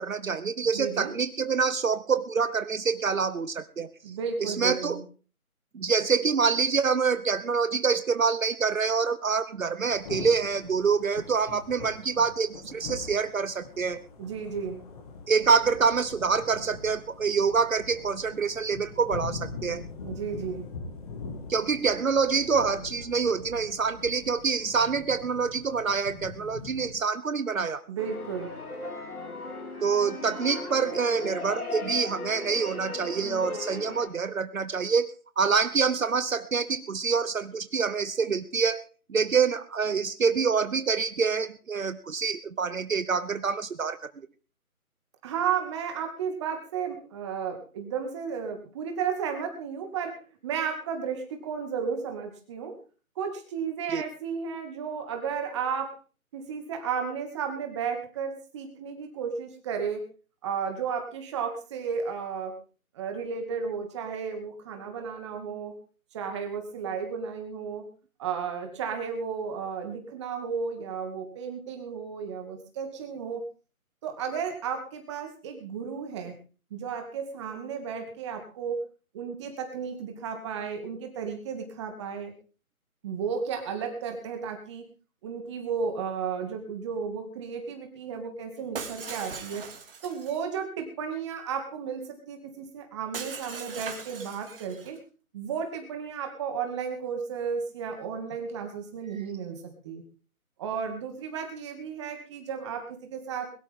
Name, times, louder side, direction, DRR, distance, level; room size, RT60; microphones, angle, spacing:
voice 1, 0.0-3.9 4.4-5.0 5.7-14.0 15.3-19.8 21.5-27.8 29.8-38.8 39.1-44.1 53.9-54.0, right 5 dB, 65° right, 13 dB, 1.1 m, -26 dB
voice 2, 0.6-1.1 4.0-5.0 14.2-14.8 20.0-20.6 27.9-28.5 45.2-50.2 50.4-52.8 53.2-55.9 56.3-60.0 60.4-62.5 62.9-65.7 66.1-67.9 68.2-73.4 74.0-76.3 76.7-78.8 79.1-82.3 83.0-84.9 85.2-89.7 90.0-95.0 95.3-100.0 100.6-103.5, right 6 dB, 20° right, 5 dB, 2.3 m, -33 dB
Thunder / Rain, 9.9-26.9, left 4 dB, 25° left, 2.5 m, -42 dB
sound 1, 28.0-34.1, left 2 dB, 85° left, 4.2 m, -37 dB
Shatter, 88.7-90.4 93.1-95.0, right 5 dB, 40° right, 2.9 m, -39 dB
22.0 x 12.0 x 3.7 m, 0.38 s
figure-of-eight pair, 155°, 43 cm